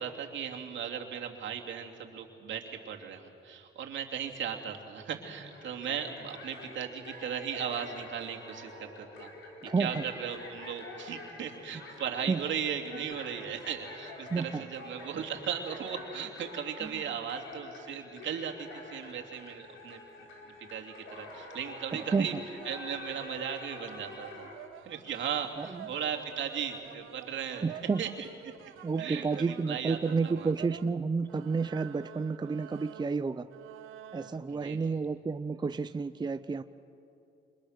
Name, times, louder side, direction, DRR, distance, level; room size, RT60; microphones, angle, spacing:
voice 1, 0.0-9.3 9.8-20.0 20.6-22.3 22.6-24.5 24.8-28.3 29.0-30.5 34.5-35.0, right 8 dB, 70° right, 1 dB, 3.0 m, -37 dB
sound 1, 5.5-24.6, left 2 dB, 85° left, 4.9 m, -47 dB
voice 2, 9.6-10.0 12.3-12.4 14.3-14.6 22.1-22.3 25.6-25.7 27.6-28.0 28.8-33.5 34.1-36.6, right 4 dB, 20° right, 11 dB, 0.6 m, -30 dB
sound 2, 22.6-30.9 31.2-34.5, right 10 dB, 85° right, 1.2 m, -49 dB
29.5 x 25.5 x 6.7 m, 2.7 s
cardioid pair, 90°, 20 cm